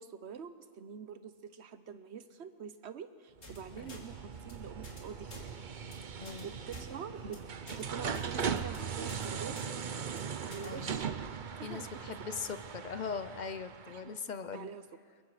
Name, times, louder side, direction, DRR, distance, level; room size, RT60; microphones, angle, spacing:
voice 1, 0.0-5.6 6.4-7.4 7.7-9.6 10.4-11.1 11.6-12.2 13.9-14.2 14.5-14.8, right 7 dB, 60° right, 11 dB, 1.1 m, -46 dB
sound 1, 3.4-3.6 3.9-4.0 4.3-4.5 4.8-5.0 5.3-5.4 5.8-5.9 6.3-6.4 6.7-6.9 7.2-7.4 7.7-7.8 8.1-8.3 8.6-8.8 9.1-9.3 9.6-9.7 10.0-10.2 10.5-10.7, left 1 dB, 75° left, 3.1 m, -50 dB
sound 2, 3.4-14.1, right 6 dB, 45° right, 0.8 m, -39 dB
voice 2, 10.6-10.9 11.6-14.7, left 6 dB, 45° left, 12 dB, 0.6 m, -40 dB
29.5 x 22.0 x 4.9 m, 2.1 s
omnidirectional pair, 1.3 m